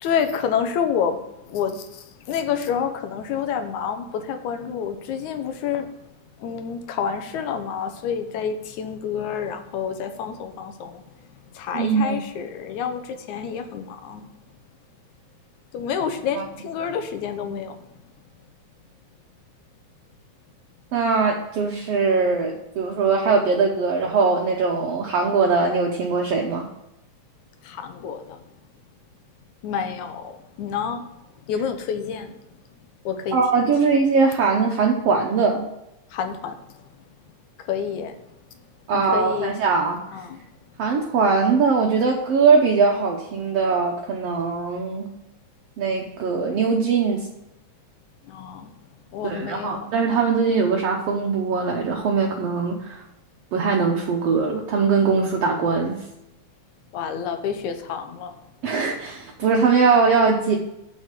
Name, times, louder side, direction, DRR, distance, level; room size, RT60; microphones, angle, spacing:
voice 1, 0.0-1.2 1.5-5.9 6.4-11.0 11.5-14.3 15.7-17.8 27.6-28.4 29.6-31.0 31.5-32.4 33.1-33.4 36.1-36.6 37.6-38.2 38.9-39.5 40.1-40.4 48.3-48.7 49.1-49.9 56.9-58.3, left 7 dB, 80° left, 7 dB, 2.3 m, -28 dB
voice 2, 11.7-12.2 16.3-16.4 20.9-26.7 33.3-35.7 38.9-40.0 40.8-45.1 45.8-47.3 49.2-53.0 53.5-56.0 58.6-60.6, right 4 dB, 65° right, 0 dB, 1.8 m, -21 dB
7.1 x 6.4 x 6.7 m, 0.90 s
omnidirectional pair, 3.4 m